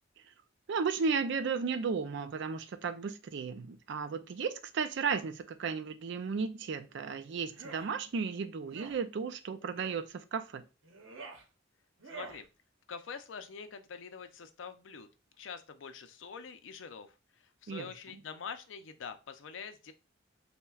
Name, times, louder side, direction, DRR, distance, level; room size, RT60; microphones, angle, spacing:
voice 1, 0.7-10.6 17.7-17.9, right 5 dB, 65° right, 0.4 m, -34 dB
sound 1, 7.5-7.9 8.7-9.0 9.8-10.0 10.8-11.4 12.0-12.4, right 4 dB, 85° right, 0.8 m, -47 dB
voice 2, 12.1-12.5 12.9-15.1 15.4-19.9, left 6 dB, 75° left, 0.5 m, -45 dB
5.6 x 2.2 x 2.3 m
head